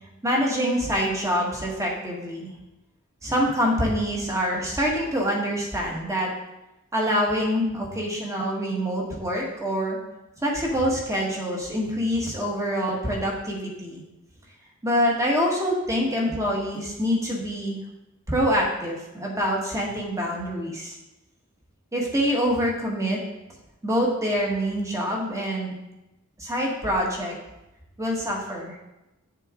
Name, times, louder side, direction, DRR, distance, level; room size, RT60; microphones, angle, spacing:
voice 1, 0.2-2.5 3.2-6.3 6.9-10.0 10.4-14.0 14.8-17.8 18.3-21.0 21.9-23.2 23.8-25.8 26.4-27.4 28.0-28.8, equal, 15° right, -2 dB, 1.7 m, -25 dB
9.4 x 6.7 x 3.8 m, 0.96 s
head